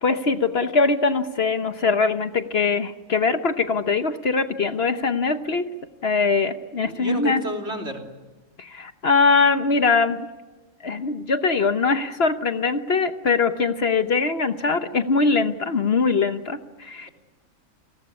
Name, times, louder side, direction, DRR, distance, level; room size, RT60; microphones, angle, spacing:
voice 1, 0.0-5.7 6.0-7.4 8.6-10.3 10.8-17.1, left 4 dB, 50° left, 9 dB, 1.2 m, -22 dB
voice 2, 6.9-8.0, equal, 55° right, 2 dB, 3.7 m, -30 dB
29.0 x 19.5 x 9.7 m, 1.2 s
omnidirectional pair, 1.4 m